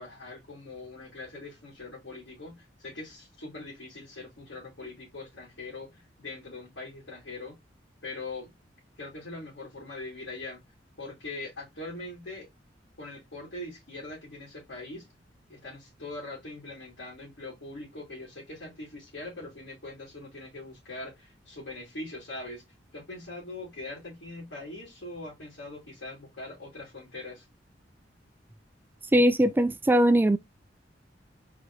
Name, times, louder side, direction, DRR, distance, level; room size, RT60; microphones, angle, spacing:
voice 1, 0.0-7.6 8.0-8.5 9.0-10.6 11.0-12.5 13.0-15.1 15.5-22.6 22.9-27.5, left 2 dB, 90° left, 2.7 m, -42 dB
voice 2, 29.1-30.4, right 1 dB, 10° right, 0.3 m, -21 dB
4.6 x 4.3 x 2.5 m
head